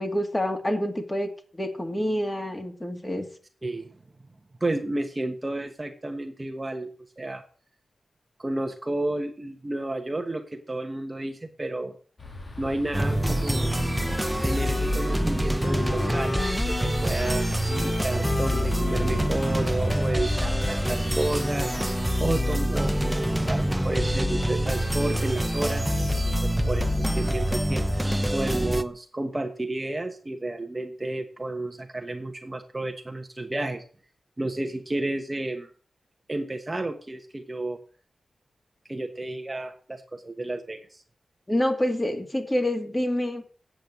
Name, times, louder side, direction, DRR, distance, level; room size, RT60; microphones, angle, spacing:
voice 1, 0.0-3.3 41.5-43.5, left 1 dB, 15° left, 4 dB, 2.2 m, -27 dB
voice 2, 4.6-6.9 7.2-7.4 8.4-12.0 12.6-13.7 14.4-16.4 16.7-28.0 28.3-33.8 34.4-35.7 36.3-37.8 38.9-41.0, right 2 dB, 25° right, 5 dB, 1.2 m, -31 dB
sound 1, 12.2-22.2, left 3 dB, 40° left, 1.9 m, -42 dB
sound 2, 12.9-28.8, equal, 5° right, 0.8 m, -25 dB
Wind instrument woodwind instrument, 13.5-22.0, left 3 dB, 55° left, 2.8 m, -38 dB
8.7 x 7.8 x 7.9 m, 0.43 s
wide cardioid pair, 90°, 0 cm